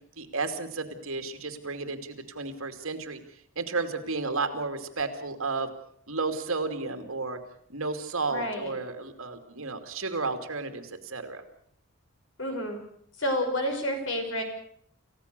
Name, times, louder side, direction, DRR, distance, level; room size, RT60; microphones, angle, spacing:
voice 1, 0.2-3.2 3.6-5.7 6.1-7.4 7.7-11.4, right 3 dB, 80° right, 7 dB, 2.7 m, -32 dB
voice 2, 8.3-8.7 12.4-12.8 13.2-14.4, equal, 65° left, 4 dB, 5.9 m, -29 dB
28.5 x 15.5 x 6.8 m, 0.64 s
head